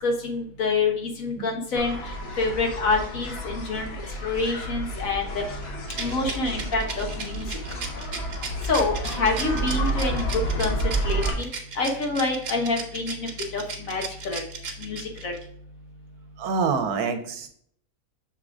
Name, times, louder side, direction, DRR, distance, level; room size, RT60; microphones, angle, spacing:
voice 1, 0.0-1.9 2.4-3.9 4.2-5.4 6.0-7.5 8.7-10.3 10.6-10.7 11.0-11.5 11.8-14.4 14.8-15.3, left 3 dB, 60° left, 2 dB, 1.6 m, -27 dB
sound 1, 1.8-11.3, right 1 dB, 45° left, 1.4 m, -30 dB
Rattle, 5.9-15.4, right 5 dB, 55° right, 1.4 m, -35 dB
voice 2, 16.4-17.5, right 5 dB, 80° right, 8 dB, 1.4 m, -26 dB
6.4 x 3.8 x 4.8 m, 0.63 s
omnidirectional pair, 1.6 m